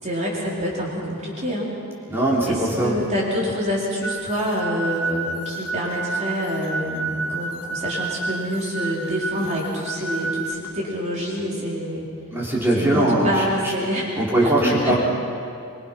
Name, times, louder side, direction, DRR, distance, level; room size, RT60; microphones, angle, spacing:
voice 1, 0.0-1.7 2.5-12.0 12.7-14.1 14.4-15.0, equal, 30° right, -5 dB, 4.3 m, -26 dB
voice 2, 2.1-2.9 12.3-13.4 14.2-15.0, right 1 dB, 10° right, -6 dB, 3.2 m, -20 dB
sound 1, 4.0-10.5, right 3 dB, 70° left, 1.5 m, -30 dB
24.0 x 23.5 x 5.9 m, 2.4 s
head